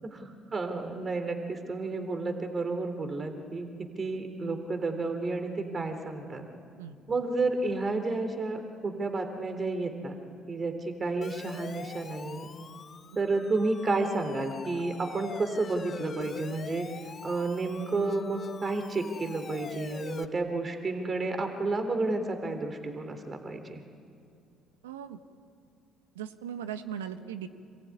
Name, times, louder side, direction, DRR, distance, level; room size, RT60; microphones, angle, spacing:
voice 1, 0.0-6.4 7.1-10.2 10.5-12.5 13.2-16.9 17.2-23.8, right 3 dB, 35° right, 6 dB, 3.4 m, -31 dB
Siren, 11.2-20.2, left 6 dB, 45° left, 1.6 m, -44 dB
voice 2, 24.8-25.2 26.1-27.5, right 9 dB, 85° right, 9 dB, 1.3 m, -38 dB
26.5 x 22.0 x 9.8 m, 2.6 s
hypercardioid pair, 55°, 0 cm